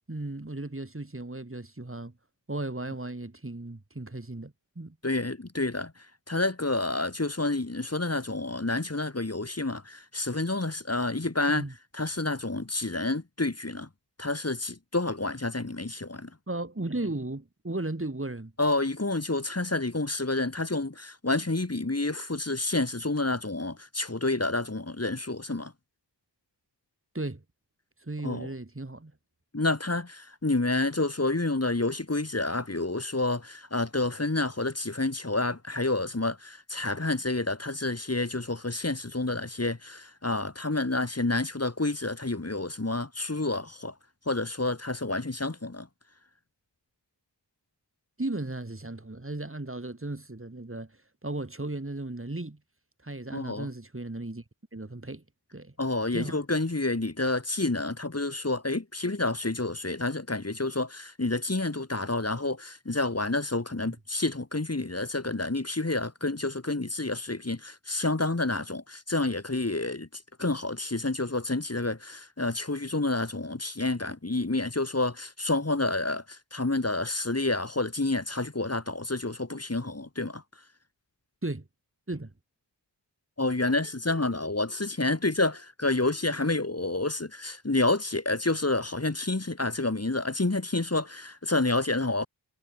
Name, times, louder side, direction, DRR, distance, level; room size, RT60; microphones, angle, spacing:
voice 1, 0.1-2.1 2.5-5.0 11.5-11.7 16.5-18.5 27.1-27.4 28.0-29.1 48.2-50.9 51.2-52.6 53.0-54.4 54.7-55.2 55.5-55.7 56.1-56.4 81.4-81.7 82.1-82.3, right 2 dB, 30° right, 7.8 m, -35 dB
voice 2, 5.0-11.6 11.9-13.9 14.2-16.3 18.6-25.7 28.2-28.5 29.5-43.9 44.3-45.9 53.3-53.7 55.8-80.4 83.4-92.3, left 2 dB, 35° left, 6.0 m, -29 dB
cardioid pair, 50°, 43 cm